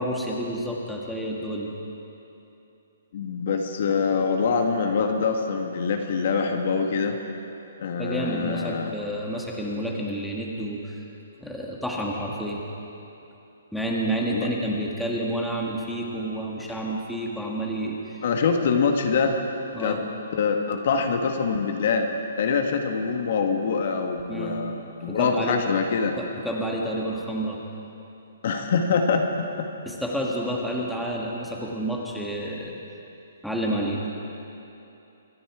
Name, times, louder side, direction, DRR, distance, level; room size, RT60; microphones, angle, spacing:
voice 1, 0.0-1.7 8.0-11.0 11.4-12.6 13.7-18.2 19.7-20.0 24.3-24.6 25.1-25.6 26.2-27.6 29.8-32.8 33.4-34.1, right 1 dB, ahead, -3 dB, 1.6 m, -29 dB
voice 2, 3.1-7.2 7.8-8.9 14.3-14.5 18.2-19.4 19.8-20.0 20.3-22.1 22.4-26.2 28.4-29.7, left 5 dB, 55° left, 4 dB, 1.3 m, -24 dB
25.0 x 10.0 x 4.8 m, 2.9 s
hypercardioid pair, 155°, 0 cm